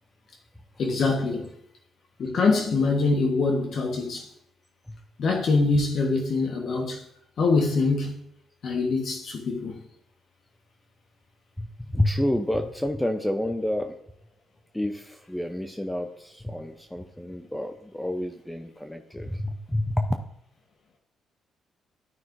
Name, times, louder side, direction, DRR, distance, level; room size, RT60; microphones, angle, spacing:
voice 1, 0.8-1.5 2.2-4.3 5.2-7.0 7.4-8.2 8.6-9.9, left 3 dB, 60° left, 1.2 m, -24 dB
voice 2, 11.6-14.0 14.7-20.1, left 1 dB, 5° left, 0.6 m, -29 dB
12.5 x 5.6 x 2.6 m
cardioid pair, 90°, 0 cm